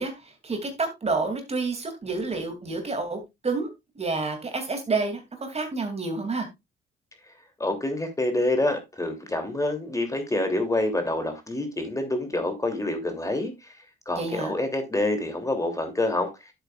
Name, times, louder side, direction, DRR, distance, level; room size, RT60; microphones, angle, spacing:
voice 1, 0.0-3.7 3.9-6.5 14.2-14.5, right 3 dB, 30° right, 2.7 m, -29 dB
voice 2, 7.6-13.7 14.1-16.3, left 2 dB, 15° left, 3.0 m, -27 dB
11.5 x 8.0 x 2.4 m
cardioid pair, 90°, 20 cm